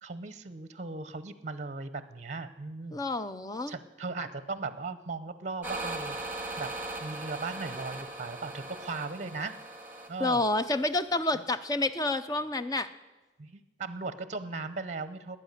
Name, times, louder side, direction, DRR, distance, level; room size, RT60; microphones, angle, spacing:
voice 1, 0.0-3.0 3.7-6.7 7.0-9.5 10.1-10.4 13.4-15.4, right 3 dB, 40° right, 14 dB, 0.7 m, -37 dB
voice 2, 2.9-3.7 10.2-12.9, left 2 dB, 20° left, 11 dB, 0.5 m, -29 dB
sound 1, 5.6-11.1, right 2 dB, 10° right, 1.5 m, -39 dB
20.0 x 8.7 x 6.6 m, 1.2 s
head